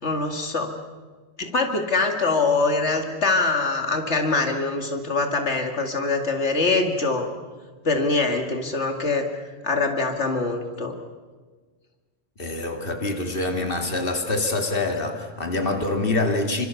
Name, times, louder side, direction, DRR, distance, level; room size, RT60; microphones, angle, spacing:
voice 1, 0.0-0.7 1.4-7.3 7.8-9.3 9.6-10.9, left 3 dB, 90° left, 4 dB, 2.5 m, -23 dB
voice 2, 12.4-16.6, left 2 dB, 55° left, 4 dB, 2.7 m, -25 dB
28.0 x 25.5 x 7.1 m, 1.4 s
omnidirectional pair, 1.1 m